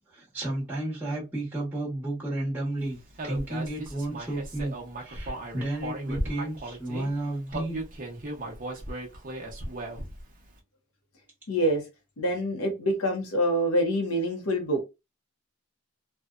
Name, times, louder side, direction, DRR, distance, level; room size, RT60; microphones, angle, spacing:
voice 1, 0.1-3.0 3.2-4.7 5.0-7.8, right 1 dB, 10° right, 0.9 m, -32 dB
Human voice, 3.2-7.1 7.5-10.2, right 1 dB, 35° right, 0.6 m, -36 dB
voice 2, 11.5-11.8 12.2-14.8, equal, 70° left, 0.7 m, -26 dB
2.6 x 2.1 x 2.3 m
head